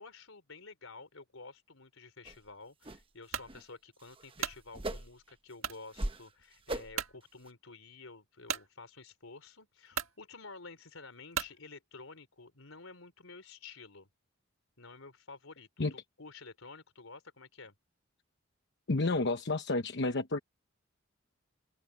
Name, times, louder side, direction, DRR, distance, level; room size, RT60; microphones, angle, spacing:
voice 1, 0.0-14.1 14.8-17.7, left 3 dB, 80° left, 3.9 m, -51 dB
sound 1, 2.3-2.4 2.8-3.0 3.4-3.6 4.0-5.3 5.7-6.3 6.7-7.1 7.5-7.6, right 1 dB, 25° right, 1.1 m, -39 dB
sound 2, 3.3-3.5 4.1-4.6 5.6-5.8 6.4-6.5 6.9-7.2 8.5-8.7 9.5-9.6 9.9-10.2 11.3-11.6, right 8 dB, 80° right, 1.7 m, -36 dB
voice 2, 18.9-20.4, left 2 dB, 55° left, 1.0 m, -30 dB
head